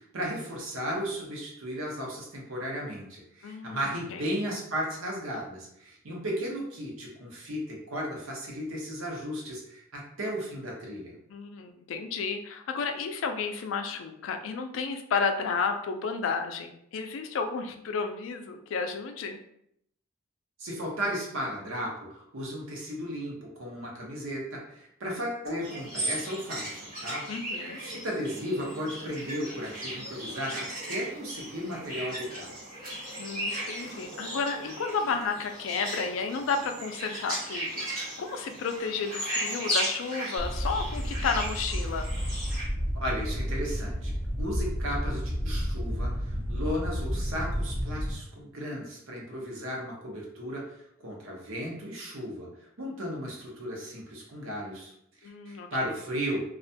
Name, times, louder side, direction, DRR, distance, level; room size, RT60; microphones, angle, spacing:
voice 1, 0.0-11.1 20.6-27.2 27.8-32.5 42.9-50.6 51.0-52.5 52.8-54.9 55.2-56.4, equal, 90° right, -2 dB, 0.8 m, -35 dB
voice 2, 3.4-4.2 11.3-19.4 27.3-27.8 33.2-42.1 55.2-55.9, left 5 dB, 70° left, 6 dB, 0.3 m, -32 dB
sound 1, 25.6-42.6, equal, 45° right, 1.2 m, -36 dB
sound 2, 40.4-48.1, equal, 10° right, 0.4 m, -31 dB
2.3 x 2.1 x 2.6 m, 0.73 s
head